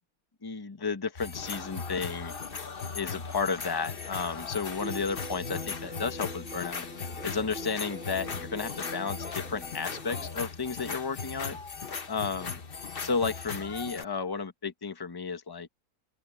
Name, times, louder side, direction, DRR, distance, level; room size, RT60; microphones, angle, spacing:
voice 1, 0.4-2.3 2.9-6.9 7.2-11.6 12.1-12.6 13.0-15.7, left 5 dB, 15° left, 1.1 m, -33 dB
sound 1, 1.2-14.0, left 5 dB, 40° left, 1.2 m, -38 dB
sound 2, 4.8-10.3, right 1 dB, 5° right, 2.2 m, -44 dB
open air
omnidirectional pair, 1.7 m